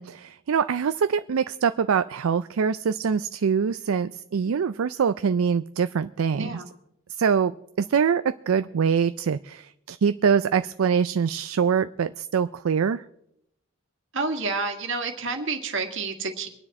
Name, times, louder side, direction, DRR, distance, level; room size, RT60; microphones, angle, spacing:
voice 1, 0.0-6.6 7.2-7.5 7.8-13.0, right 6 dB, 80° right, 12 dB, 0.4 m, -24 dB
voice 2, 6.3-6.7 14.1-16.5, right 3 dB, 65° right, 5 dB, 1.9 m, -29 dB
23.0 x 9.7 x 4.3 m, 0.77 s
head